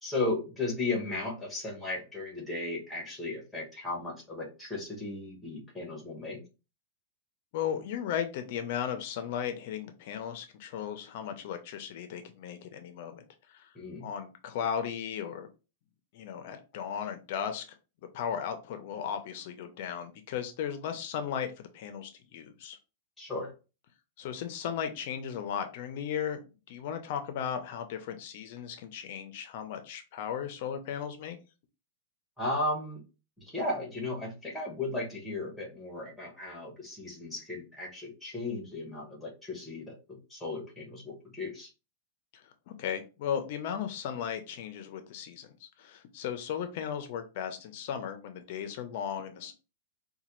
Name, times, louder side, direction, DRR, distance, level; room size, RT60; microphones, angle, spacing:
voice 1, 0.0-6.4 13.7-14.1 23.2-23.5 32.4-33.0 33.5-41.7, left 2 dB, 5° left, -2 dB, 1.0 m, -35 dB
voice 2, 7.5-13.2 13.5-13.7 14.0-15.5 16.1-17.6 18.1-22.8 24.2-26.4 26.7-31.4 42.3-49.5, left 8 dB, 45° left, 8 dB, 0.4 m, -36 dB
4.1 x 2.2 x 3.0 m, 0.31 s
supercardioid pair, 170°, 0 cm